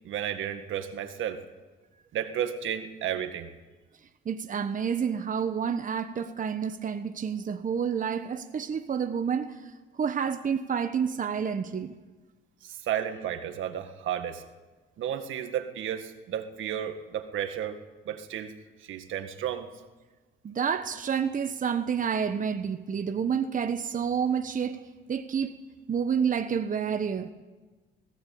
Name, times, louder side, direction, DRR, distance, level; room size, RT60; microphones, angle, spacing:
voice 1, 0.0-1.4 2.1-3.5 12.6-14.4 15.0-17.8 18.1-18.5 18.8-19.7, right 10 dB, 80° right, 1.8 m, -32 dB
voice 2, 4.2-11.9 20.4-24.8 25.1-25.6 25.9-27.3, right 7 dB, 40° right, 1.2 m, -29 dB
19.0 x 16.5 x 8.6 m
cardioid pair, 90°, 20 cm